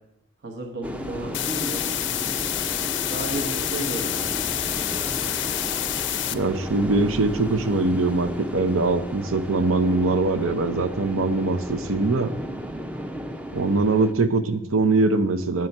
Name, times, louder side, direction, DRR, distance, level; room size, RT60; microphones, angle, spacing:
voice 1, 0.4-1.8 3.1-4.4, right 1 dB, 55° right, 2 dB, 1.0 m, -33 dB
sound 1, 0.8-14.1, equal, 5° right, 0.4 m, -34 dB
sound 2, 1.3-6.3, left 13 dB, 60° left, 0.4 m, -28 dB
voice 2, 6.3-12.3 13.5-15.7, right 3 dB, 90° right, 9 dB, 0.7 m, -22 dB
7.6 x 6.0 x 5.4 m, 0.87 s
head